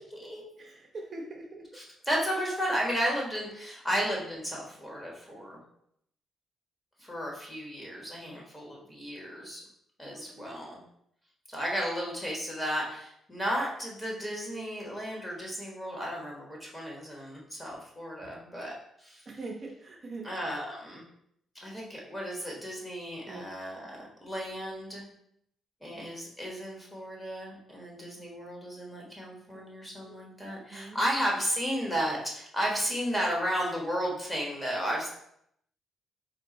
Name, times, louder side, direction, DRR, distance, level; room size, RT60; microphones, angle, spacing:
voice 1, 0.6-1.7 10.1-10.6 18.2-18.3 19.3-20.5 23.3-23.4 25.8-26.1 29.5-29.7 30.0-30.2 30.7-31.0, right 3 dB, 40° right, 0 dB, 0.7 m, -43 dB
voice 2, 2.1-5.6 7.0-9.6 10.0-10.8 11.5-19.2 20.2-21.0 21.6-25.0 25.8-35.1, equal, 10° left, -2 dB, 1.3 m, -33 dB
3.8 x 2.5 x 3.8 m, 0.72 s
cardioid pair, 90°, 0 cm